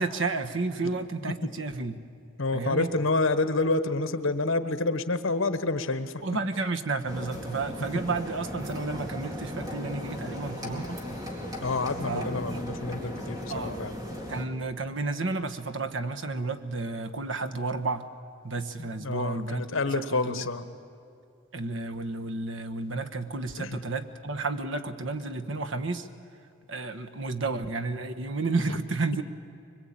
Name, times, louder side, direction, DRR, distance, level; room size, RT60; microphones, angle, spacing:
voice 1, 0.0-2.0 2.5-2.9 6.2-11.0 12.0-12.6 13.5-13.8 14.3-18.0 18.4-20.4 21.5-26.1 26.7-29.2, right 3 dB, 65° right, 7 dB, 1.2 m, -32 dB
voice 2, 2.4-6.1 11.6-13.9 18.8-20.6 23.6-23.8 28.7-28.8, left 3 dB, 75° left, 11 dB, 1.2 m, -28 dB
sound 1, 7.1-14.4, equal, 20° right, 2.2 m, -37 dB
24.0 x 21.5 x 8.8 m, 2.5 s
head